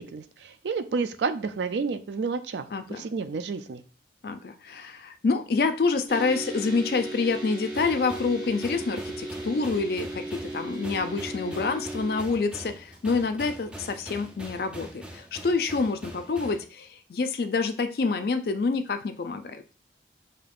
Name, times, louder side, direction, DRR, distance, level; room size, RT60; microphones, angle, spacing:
voice 1, 0.0-2.7 3.0-3.8, right 4 dB, 75° right, 10 dB, 0.4 m, -30 dB
voice 2, 2.7-3.1 4.2-19.6, left 4 dB, 55° left, 9 dB, 0.4 m, -27 dB
sound 1, 6.1-12.2, right 2 dB, 30° right, 2.0 m, -36 dB
sound 2, 7.7-16.6, right 1 dB, 5° right, 0.5 m, -43 dB
5.1 x 2.8 x 2.4 m, 0.36 s
head